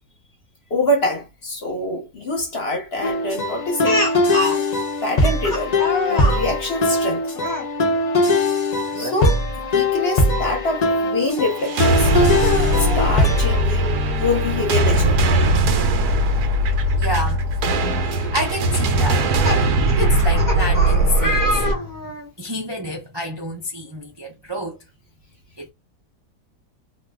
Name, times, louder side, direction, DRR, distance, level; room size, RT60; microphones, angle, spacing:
voice 1, 0.7-4.1 5.0-7.3 8.9-12.1 12.7-15.4, left 2 dB, 45° left, 1.0 m, -25 dB
sound 1, 3.0-13.6, left 2 dB, 65° left, 0.4 m, -21 dB
Speech, 3.8-4.6 5.4-6.4 7.3-7.7 8.9-9.2 9.6-9.7 11.4-11.5 12.3-13.1 14.5-14.6 14.9-15.0 16.9-17.0 17.6-17.8 18.9-22.3, left 1 dB, 20° left, 0.6 m, -26 dB
sound 2, 11.6-21.7, right 1 dB, 75° right, 1.1 m, -19 dB
voice 2, 17.0-17.4 18.0-19.3 20.0-22.1 22.4-24.8 25.6-25.7, left 1 dB, 35° right, 0.4 m, -29 dB
2.8 x 2.3 x 3.4 m
omnidirectional pair, 1.7 m